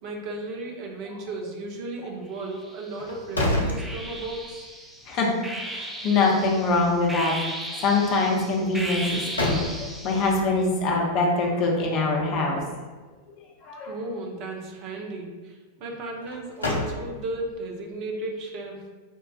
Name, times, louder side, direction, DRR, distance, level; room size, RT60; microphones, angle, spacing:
voice 1, 0.0-4.7 13.9-18.8, right 2 dB, 40° right, 0 dB, 0.7 m, -35 dB
sound 1, 2.4-3.1 3.8-10.4, right 1 dB, 5° right, 0.5 m, -36 dB
sound 2, 3.0-4.6 5.0-5.1 8.9-10.2 16.2-17.5, left 1 dB, 75° left, 0.5 m, -29 dB
voice 2, 5.7-12.6 13.6-13.9, left 3 dB, 40° left, -1 dB, 0.7 m, -24 dB
5.2 x 2.3 x 2.3 m, 1.3 s
figure-of-eight pair, 90°, 0 cm